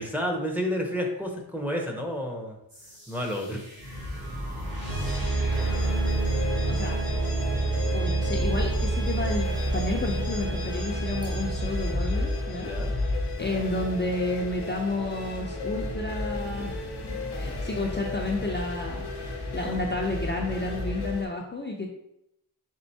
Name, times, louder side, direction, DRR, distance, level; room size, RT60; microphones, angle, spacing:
voice 1, 0.0-2.6 3.1-3.6 12.6-12.9, equal, 5° right, 0 dB, 0.7 m, -30 dB
sound 1, 2.7-13.5, right 2 dB, 60° right, 1.7 m, -29 dB
sound 2, 3.8-21.1, left 1 dB, 35° right, 1.0 m, -34 dB
sound 3, 5.5-21.3, left 4 dB, 90° left, 0.6 m, -38 dB
voice 2, 6.5-7.0 7.9-12.7 13.4-16.9 17.4-21.9, left 2 dB, 30° left, -1 dB, 0.5 m, -31 dB
4.4 x 3.8 x 2.7 m, 0.79 s
wide cardioid pair, 80°, 39 cm